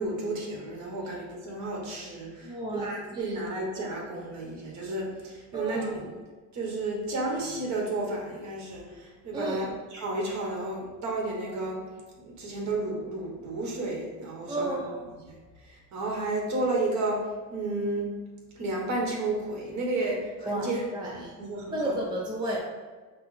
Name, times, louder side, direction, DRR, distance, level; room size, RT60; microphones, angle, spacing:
voice 1, 0.0-6.1 6.5-9.6 9.9-11.8 12.2-14.8 15.3-15.4 15.6-17.2 17.5-18.1 18.6-21.9, right 2 dB, 45° right, -1 dB, 1.4 m, -32 dB
voice 2, 2.4-3.4 5.5-5.9 9.3-9.7 14.5-15.1 20.5-21.3 21.7-22.6, right 1 dB, 10° right, -3 dB, 0.4 m, -33 dB
5.3 x 2.1 x 4.1 m, 1.4 s
cardioid pair, 130°, 40 cm